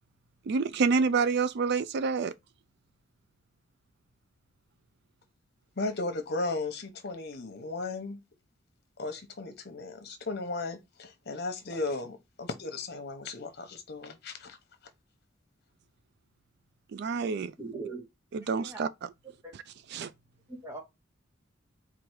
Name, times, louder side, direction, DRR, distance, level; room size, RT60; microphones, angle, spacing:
voice 1, 0.5-2.3 16.9-17.5 18.3-19.1 19.5-19.6 19.9-20.1, right 5 dB, 60° right, 0.3 m, -28 dB
voice 2, 5.8-8.2 9.0-14.6, left 3 dB, 55° left, 1.0 m, -35 dB
voice 3, 17.6-18.0 18.6-18.8 19.4-19.5 20.5-20.8, right 3 dB, 15° right, 0.8 m, -40 dB
4.6 x 2.5 x 4.6 m
head